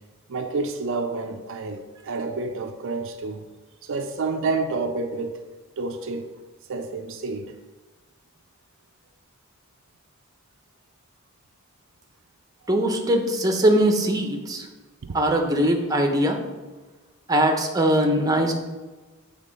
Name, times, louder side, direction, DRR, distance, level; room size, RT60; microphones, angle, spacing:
voice 1, 0.3-3.5 3.8-5.4 5.8-6.3 6.7-7.6 15.0-15.1, right 3 dB, 65° right, 0.5 m, -29 dB
voice 2, 12.7-14.7 15.1-16.4 17.3-18.5, right 1 dB, 15° right, 0.8 m, -21 dB
8.2 x 3.5 x 5.3 m
head